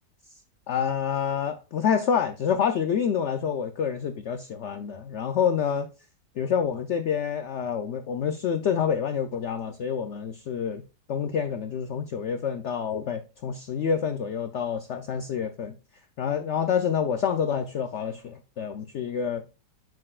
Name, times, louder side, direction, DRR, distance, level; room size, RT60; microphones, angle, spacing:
voice 1, 0.7-5.9 6.4-10.8 11.1-15.7 16.2-19.4, left 7 dB, 85° left, 0.6 m, -27 dB
7.5 x 6.0 x 2.4 m
omnidirectional pair, 1.8 m